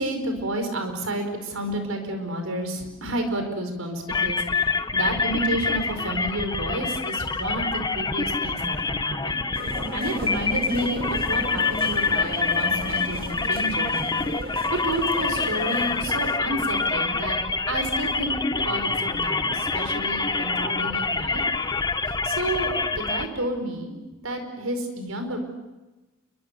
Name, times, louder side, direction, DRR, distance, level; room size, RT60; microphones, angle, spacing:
voice 1, 0.0-14.2 14.6-17.4 17.7-21.4 22.2-23.9 24.2-25.4, right 1 dB, 85° right, 6 dB, 5.0 m, -30 dB
sound 1, 4.1-23.3, left 4 dB, 20° left, 0.8 m, -26 dB
sound 2, 9.5-16.4, right 1 dB, 45° right, 2.0 m, -37 dB
29.0 x 23.5 x 6.9 m, 1.1 s
head